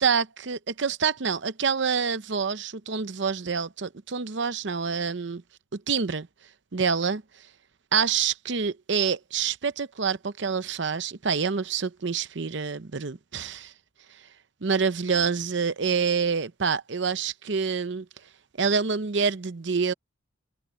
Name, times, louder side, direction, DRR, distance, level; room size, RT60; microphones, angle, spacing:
voice 1, 0.0-5.4 5.7-6.3 6.7-7.2 7.9-13.7 14.6-18.1 18.6-19.9, right 5 dB, 60° right, 0.7 m, -27 dB
head